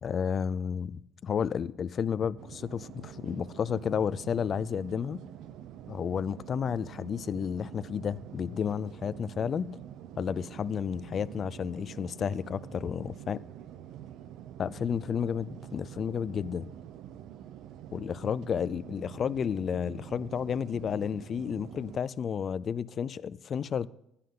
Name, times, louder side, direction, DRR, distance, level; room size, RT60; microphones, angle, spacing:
voice 1, 0.0-5.2 5.9-9.8 10.2-13.4 14.6-16.7 17.9-23.9, left 7 dB, 40° left, 0.4 m, -32 dB
sound 1, 2.4-22.0, right 10 dB, 70° right, 0.7 m, -46 dB
15.5 x 11.5 x 3.8 m
cardioid pair, 150°, 0 cm